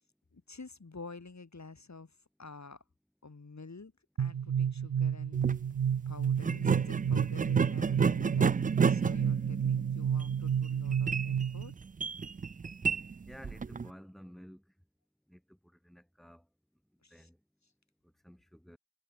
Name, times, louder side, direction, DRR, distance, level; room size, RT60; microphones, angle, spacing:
voice 1, 0.3-2.1 2.4-2.8 3.2-3.9 4.2-5.4 6.1-8.6 8.8-11.7 17.0-17.3, left 3 dB, 40° left, 5.3 m, -49 dB
sound 1, 4.2-11.7, right 8 dB, 60° right, 1.1 m, -31 dB
sound 2, 5.3-5.6 6.4-13.9, right 5 dB, 20° right, 0.4 m, -32 dB
voice 2, 13.3-14.6 15.3-15.6 15.8-16.4 17.1-17.4 18.2-18.8, equal, ahead, 5.1 m, -52 dB
cardioid pair, 60°, 41 cm